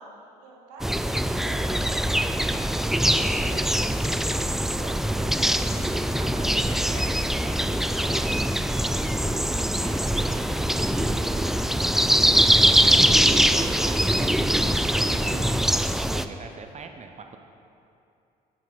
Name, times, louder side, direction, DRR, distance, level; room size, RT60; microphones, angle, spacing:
voice 1, 0.0-2.3 2.6-3.8 15.3-15.9, right 2 dB, 85° right, 0 dB, 1.1 m, -45 dB
sound 1, 0.8-16.2, equal, ahead, 0.3 m, -23 dB
voice 2, 3.3-3.7 4.8-8.6 9.0-11.9 12.3-15.5 16.1-17.4, right 5 dB, 35° right, 6 dB, 0.7 m, -41 dB
7.7 x 7.3 x 4.1 m, 2.6 s
hypercardioid pair, 50°, 20 cm